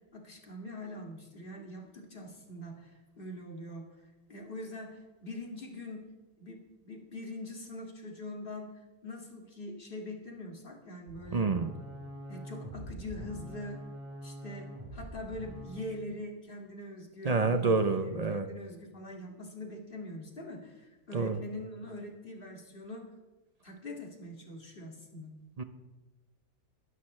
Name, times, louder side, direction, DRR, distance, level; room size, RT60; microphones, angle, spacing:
voice 1, 0.1-6.0 6.4-11.5 12.3-13.9 14.2-23.1 23.6-25.3, left 1 dB, 35° left, 1 dB, 2.3 m, -43 dB
sound 1, 11.1-15.9, equal, 25° right, 4.4 m, -44 dB
voice 2, 11.3-11.7 17.2-18.5 21.1-21.4 25.6-25.7, right 4 dB, 45° right, 9 dB, 0.5 m, -28 dB
22.5 x 12.0 x 3.2 m, 1.1 s
omnidirectional pair, 1.6 m